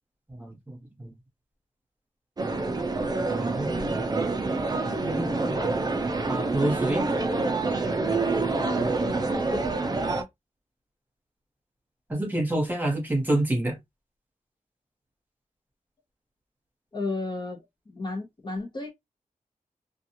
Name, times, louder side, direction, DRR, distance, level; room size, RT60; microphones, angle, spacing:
voice 1, 0.3-1.1 3.4-4.1 4.7-5.7 6.2-7.0 12.1-13.8, right 1 dB, 15° right, 1.2 m, -28 dB
sound 1, 2.4-10.2, right 3 dB, 30° right, 0.5 m, -27 dB
voice 2, 9.3-9.6 16.9-18.9, left 3 dB, 35° left, 0.8 m, -33 dB
2.4 x 2.4 x 2.9 m
wide cardioid pair, 100°, 14 cm